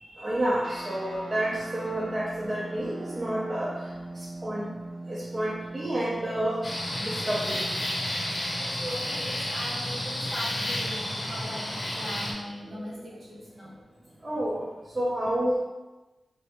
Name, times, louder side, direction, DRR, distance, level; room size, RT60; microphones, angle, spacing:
voice 1, 0.0-3.9 4.1-4.7 5.1-6.6 7.0-7.6 12.7-13.0 14.2-14.7 14.9-15.6, right 1 dB, 35° right, -7 dB, 0.6 m, -30 dB
sound 1, 0.6-11.3, right 2 dB, 85° right, 0.5 m, -42 dB
sound 2, 6.6-12.3, left 1 dB, 45° left, 0.7 m, -31 dB
voice 2, 8.6-11.7 12.0-13.7, equal, 65° right, -6 dB, 1.1 m, -39 dB
3.2 x 2.6 x 3.0 m, 1.1 s
wide cardioid pair, 105°, 0 cm